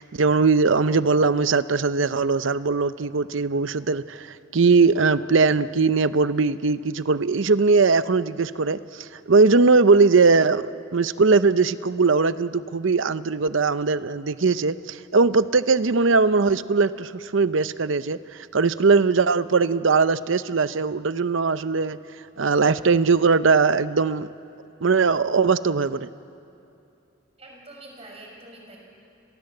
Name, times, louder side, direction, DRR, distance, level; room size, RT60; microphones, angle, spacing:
voice 1, 0.0-10.6 10.9-18.2 18.5-22.0 22.4-24.3 24.8-26.1, right 4 dB, 70° right, 14 dB, 0.7 m, -20 dB
voice 2, 27.4-28.8, right 2 dB, 30° right, 0 dB, 5.5 m, -45 dB
30.0 x 22.0 x 7.8 m, 2.7 s
head